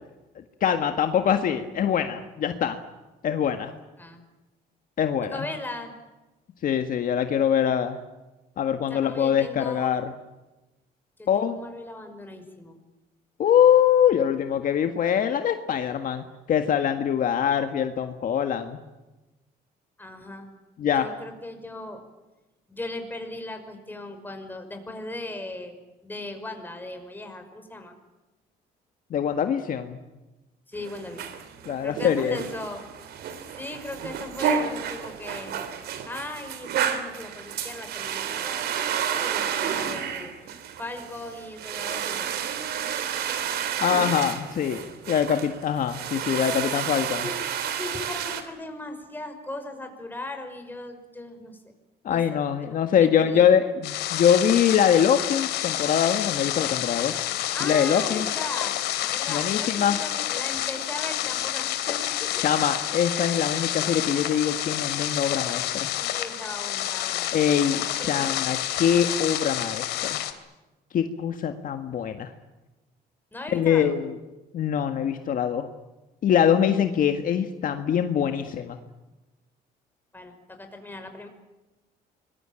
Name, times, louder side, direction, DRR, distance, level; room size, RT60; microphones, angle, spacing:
voice 1, 0.6-2.8 3.2-3.7 5.0-5.5 6.6-8.0 8.6-10.1 11.3-11.6 13.4-18.8 20.8-21.1 29.1-30.0 31.7-32.4 43.8-44.8 45.1-47.3 52.0-57.1 57.6-58.3 59.3-60.0 62.4-65.9 67.3-70.2 70.9-72.3 73.5-74.2 74.5-75.7 76.2-78.8, left 8 dB, 55° left, 7 dB, 1.8 m, -23 dB
voice 2, 5.3-5.9 8.9-9.9 11.2-12.8 20.0-20.5 20.8-22.0 22.7-27.9 30.7-31.4 31.8-32.8 33.5-35.6 36.1-40.3 40.8-42.3 47.2-47.4 47.6-51.7 52.1-52.4 52.7-53.5 57.5-58.8 59.0-62.4 66.0-68.3 73.3-74.0 80.1-81.3, left 2 dB, 10° left, 5 dB, 5.6 m, -38 dB
sound 1, 30.8-48.4, right 8 dB, 70° right, 3.4 m, -31 dB
sound 2, 53.8-70.3, left 13 dB, 80° left, 2.6 m, -29 dB
26.0 x 22.0 x 9.0 m, 1.1 s
cardioid pair, 110°, 17 cm